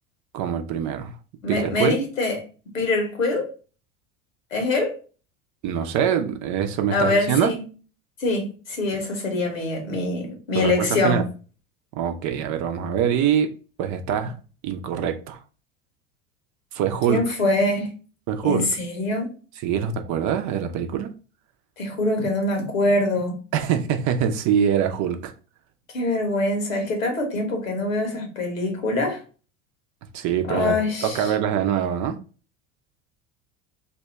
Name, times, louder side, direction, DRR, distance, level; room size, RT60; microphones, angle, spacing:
voice 1, 0.3-1.1 1.5-2.0 5.6-7.5 10.5-11.2 12.0-13.5 13.8-14.3 14.6-15.4 16.7-17.2 18.3-18.7 19.6-21.1 23.5-25.3 30.1-30.8 31.0-32.2, right 8 dB, 45° right, 0.7 m, -24 dB
voice 2, 1.4-2.4 2.7-3.5 4.5-5.0 6.9-7.6 8.2-11.3 17.1-17.9 18.4-19.3 21.8-23.4 25.9-29.2 30.5-31.3, left 2 dB, 85° left, 1.2 m, -24 dB
2.7 x 2.3 x 4.0 m
hypercardioid pair, 80°, 39 cm